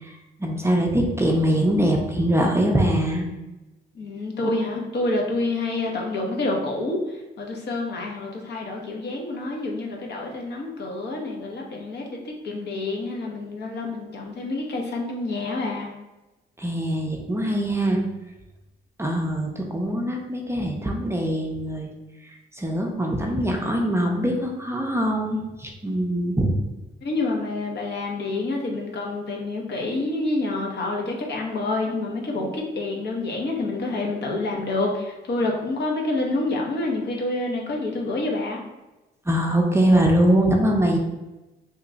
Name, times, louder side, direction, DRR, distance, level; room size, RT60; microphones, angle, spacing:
voice 1, 0.4-3.3 16.6-18.0 19.0-21.9 22.6-26.5 39.3-41.0, right 1 dB, 15° right, 0 dB, 0.5 m, -22 dB
voice 2, 3.9-15.9 27.0-38.6, left 2 dB, 60° left, 0 dB, 0.9 m, -28 dB
3.0 x 2.3 x 3.9 m, 1.0 s
cardioid pair, 90°, 20 cm